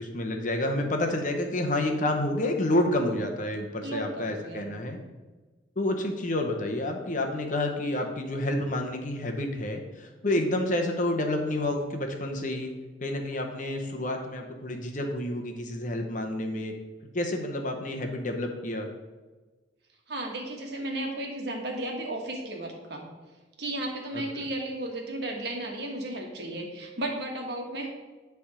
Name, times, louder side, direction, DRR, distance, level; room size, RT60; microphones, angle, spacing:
voice 1, 0.0-5.0 5.8-12.7 13.0-16.7 17.1-18.9 24.1-24.2, left 1 dB, 45° left, 4 dB, 0.9 m, -29 dB
voice 2, 3.8-4.7 10.3-10.5 20.1-23.1 23.6-27.9, right 1 dB, 60° right, 1 dB, 1.4 m, -34 dB
10.0 x 3.5 x 4.9 m, 1.3 s
head